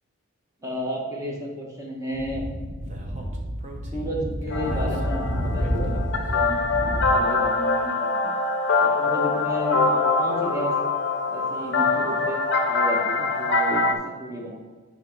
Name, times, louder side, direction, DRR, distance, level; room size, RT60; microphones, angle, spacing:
voice 1, 0.6-2.5 3.9-5.3 5.5-8.4 8.8-10.7 11.3-12.4 12.7-14.6, equal, 15° right, -1 dB, 1.2 m, -32 dB
Speech / Wind, 2.1-7.1, equal, 30° right, 0.9 m, -29 dB
sound 1, 4.5-13.9, left 3 dB, 50° left, 0.6 m, -24 dB
8.5 x 4.4 x 4.6 m, 1.4 s
head